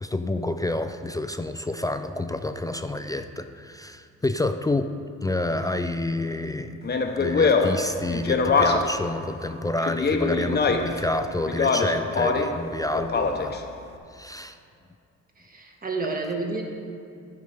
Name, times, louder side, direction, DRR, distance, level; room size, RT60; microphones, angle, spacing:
voice 1, 0.0-4.9 5.2-13.5 14.1-14.6, left 2 dB, 15° left, 8 dB, 0.3 m, -28 dB
Speech, 6.8-9.0 9.8-11.0 11.5-12.6 12.9-13.6, left 4 dB, 35° left, 0.8 m, -23 dB
voice 2, 15.4-16.6, right 3 dB, 30° right, 1 dB, 1.4 m, -30 dB
9.4 x 5.8 x 4.9 m, 2.5 s
cardioid pair, 90°, 30 cm